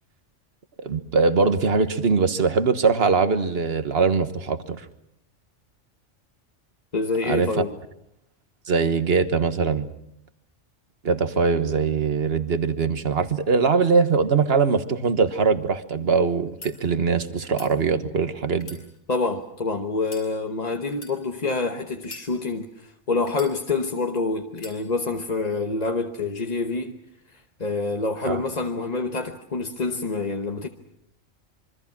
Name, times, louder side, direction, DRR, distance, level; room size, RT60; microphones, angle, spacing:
voice 1, 0.8-4.8 7.3-7.5 8.7-9.9 11.0-18.8 28.2-28.4, right 5 dB, 55° right, 1.5 m, -22 dB
voice 2, 6.9-7.7 19.1-27.0 27.3-30.7, left 3 dB, 35° left, 1.1 m, -27 dB
sound 1, 16.4-16.7 17.4-17.7 18.5-19.4 20.0-20.3 20.9-21.1 22.0-22.7 23.3-23.9 24.5-24.8, left 2 dB, 80° left, 6.1 m, -43 dB
26.5 x 24.0 x 6.0 m
omnidirectional pair, 1.3 m